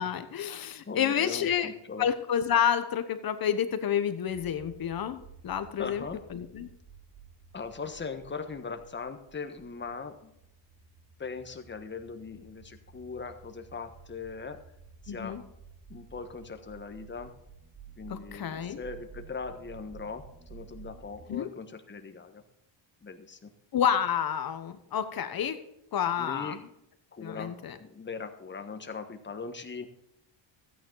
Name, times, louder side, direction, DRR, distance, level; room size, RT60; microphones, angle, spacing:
voice 1, 0.0-1.7 2.0-6.0 6.3-6.7 15.1-15.4 18.1-18.8 21.3-21.5 23.7-25.6 25.9-26.6 27.2-27.8, left 8 dB, 45° left, 10 dB, 1.2 m, -29 dB
voice 2, 0.9-2.1 5.8-6.2 7.5-10.3 11.2-14.6 15.0-15.4 15.9-17.3 18.0-20.2 20.5-22.4 23.0-23.5 26.2-26.6 27.1-27.5 27.8-29.9, left 4 dB, 20° left, 6 dB, 1.4 m, -40 dB
sound 1, 4.3-21.3, right 6 dB, 5° left, 2.3 m, -53 dB
13.5 x 9.5 x 4.0 m, 0.81 s
cardioid pair, 120°, 49 cm